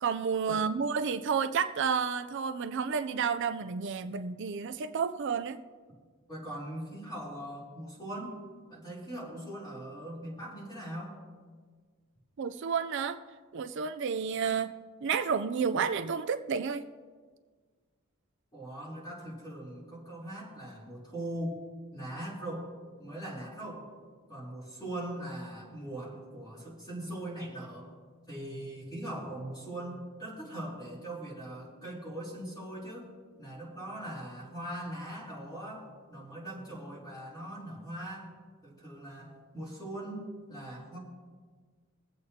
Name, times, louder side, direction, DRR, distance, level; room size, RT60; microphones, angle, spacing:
voice 1, 0.0-5.6 12.4-13.2 13.5-14.7 15.0-16.8, right 6 dB, 55° right, 10 dB, 0.4 m, -30 dB
voice 2, 6.3-8.3 8.7-11.2 18.5-21.6 21.9-23.9 24.3-27.9 28.3-33.1 33.4-38.3 38.6-41.0, right 1 dB, 20° left, -5 dB, 3.5 m, -41 dB
23.5 x 8.0 x 2.8 m, 1.5 s
head